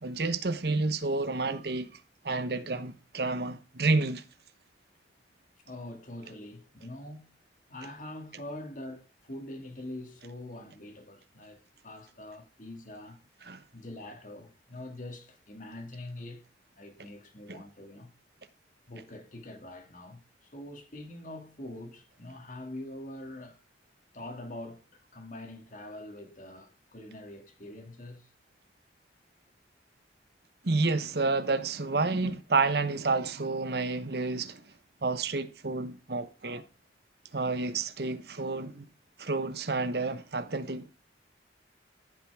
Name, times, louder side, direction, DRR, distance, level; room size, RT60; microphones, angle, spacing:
voice 1, 0.0-1.9 2.2-4.2 13.5-13.6 17.5-17.6 30.6-34.6 35.0-36.6 37.3-38.9 39.2-40.9, right 3 dB, 60° right, 1.0 m, -30 dB
voice 2, 5.6-7.3 7.7-13.2 13.7-16.5 16.8-18.1 18.9-23.6 24.1-28.3 32.1-32.4, left 1 dB, 45° left, 2.0 m, -44 dB
14.5 x 5.9 x 4.7 m
head